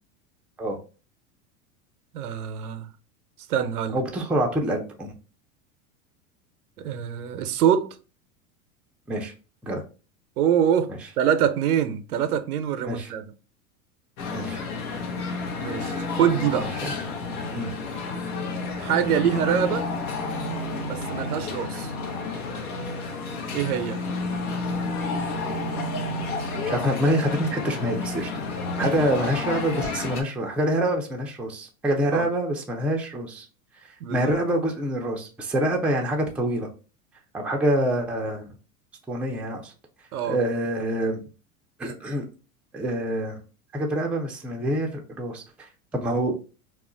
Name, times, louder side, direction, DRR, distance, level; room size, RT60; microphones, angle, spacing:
voice 1, 2.1-2.9 3.5-4.0 6.8-7.9 10.4-13.3 15.6-16.7 18.8-19.9 20.8-21.9 23.5-24.0 28.8-28.9 32.1-32.3 34.0-34.4 40.1-40.4, right 9 dB, 90° right, 0.6 m, -24 dB
voice 2, 3.9-5.1 9.1-9.3 9.6-9.8 12.8-13.1 14.3-14.6 16.8-16.9 17.5-17.7 26.7-28.3 28.8-33.5 34.1-36.7 37.3-38.5 39.1-39.7 40.2-41.2 41.8-42.2 42.7-43.4 43.7-45.4 45.9-46.3, right 1 dB, 5° right, 0.3 m, -26 dB
sound 1, 14.2-30.2, left 3 dB, 80° left, 0.8 m, -30 dB
2.3 x 2.1 x 3.7 m
hypercardioid pair, 100°, 43 cm